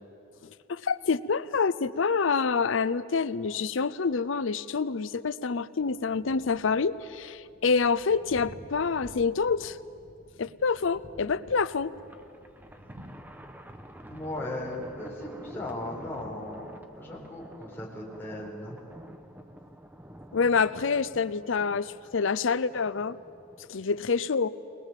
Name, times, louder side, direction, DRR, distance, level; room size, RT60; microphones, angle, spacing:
voice 1, 0.7-9.8 10.4-11.9 20.3-23.2 23.7-24.5, left 5 dB, 70° left, 17 dB, 0.6 m, -27 dB
Thunder, 5.8-21.1, equal, 40° right, 2.0 m, -53 dB
Thunder 2, 11.9-23.7, equal, 10° right, 0.9 m, -49 dB
voice 2, 14.1-18.8, left 1 dB, 10° left, -5 dB, 4.3 m, -37 dB
21.0 x 21.0 x 7.5 m, 2.7 s
head